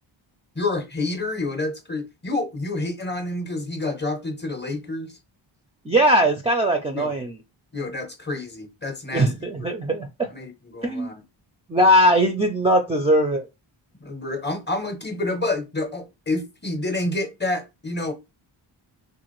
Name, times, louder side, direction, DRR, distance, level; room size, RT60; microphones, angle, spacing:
voice 1, 0.6-5.2 6.9-7.1 7.7-9.3 9.6-9.7 10.3-11.2 14.0-18.1, left 2 dB, 20° left, 0.6 m, -28 dB
voice 2, 5.9-7.4 9.1-10.3 10.8-11.1 11.7-13.4, equal, 15° right, 0.3 m, -20 dB
2.5 x 2.5 x 3.0 m
cardioid pair, 65°, 48 cm